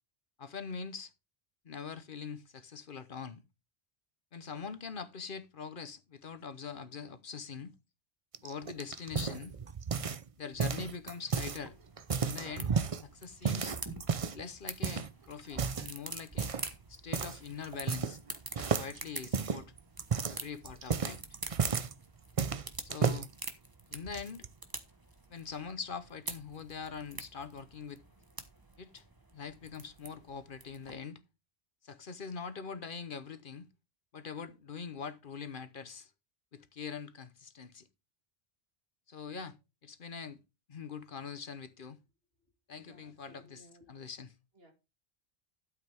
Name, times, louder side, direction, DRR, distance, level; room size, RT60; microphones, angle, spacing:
voice 1, 0.4-1.1 1.6-3.4 4.3-7.7 8.4-9.6 10.4-11.8 12.2-13.8 14.3-16.5 16.9-18.2 18.6-19.7 20.3-21.4 22.8-23.3 23.9-24.5 25.3-28.0 28.8-29.0 29.3-31.2 31.8-33.7 34.1-36.1 36.5-37.9 39.1-39.6 39.8-40.4 40.7-42.0 42.7-44.3, left 6 dB, 55° left, 1.0 m, -43 dB
sound 1, 8.3-10.3 10.6-11.6 12.0-13.0 13.4-14.4 14.8-15.1 15.5-15.9 16.4-16.7 17.1-17.4 17.6-18.3 18.6-21.9 22.4-23.3 23.9-24.5, right 6 dB, 40° right, 0.6 m, -32 dB
sound 2, 11.5-30.9, right 2 dB, 20° right, 1.3 m, -47 dB
voice 2, 42.9-43.9 44.6-44.7, equal, 65° right, 2.8 m, -59 dB
12.5 x 8.1 x 3.5 m
omnidirectional pair, 1.1 m